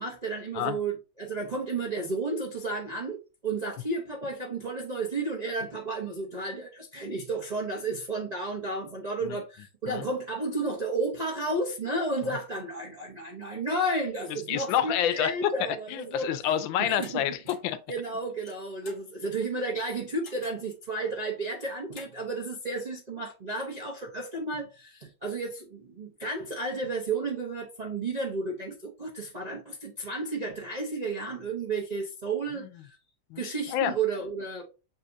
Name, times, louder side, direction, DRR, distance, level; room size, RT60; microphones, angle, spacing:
voice 1, 0.0-16.3 16.8-17.2 17.9-33.0 33.4-34.6, right 2 dB, 55° right, 0.4 m, -32 dB
voice 2, 14.3-17.8 32.6-32.7 33.3-33.4 33.7-33.9, left 10 dB, 85° left, 1.3 m, -28 dB
sound 1, 17.0-17.1 17.5-17.7 18.3-19.1 20.2-20.7 21.5-22.1, left 3 dB, 45° left, 1.6 m, -48 dB
7.3 x 2.7 x 2.6 m
omnidirectional pair, 2.0 m